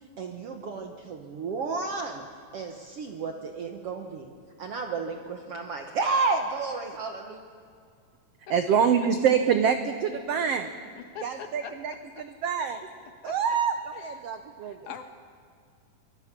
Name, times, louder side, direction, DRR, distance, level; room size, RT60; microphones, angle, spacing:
voice 1, 0.2-2.3 2.5-4.3 4.6-7.4, right 4 dB, 65° right, 4 dB, 1.5 m, -31 dB
voice 2, 8.5-10.7 11.2-12.8 13.2-14.8, right 7 dB, 85° right, 8 dB, 1.3 m, -26 dB
voice 3, 11.0-11.8 12.2-12.3 13.2-13.6 14.6-15.0, left 8 dB, 65° left, 7 dB, 2.4 m, -42 dB
24.5 x 22.5 x 6.0 m, 2.2 s
omnidirectional pair, 4.0 m